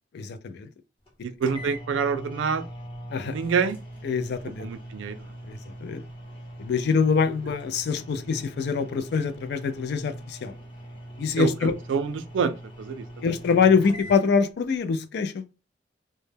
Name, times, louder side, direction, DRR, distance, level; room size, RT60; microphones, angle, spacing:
voice 1, 0.1-0.7 3.1-3.4 4.0-4.7 5.5-6.0 6.6-10.6 11.2-11.7 13.2-15.4, left 5 dB, 60° left, 0.3 m, -24 dB
sound 1, 1.1-1.2 1.4-14.2, equal, 30° left, 0.7 m, -42 dB
voice 2, 1.2-2.6 3.3-3.8 4.6-5.2 11.4-13.2, right 6 dB, 80° right, 0.3 m, -27 dB
2.1 x 2.0 x 3.2 m
head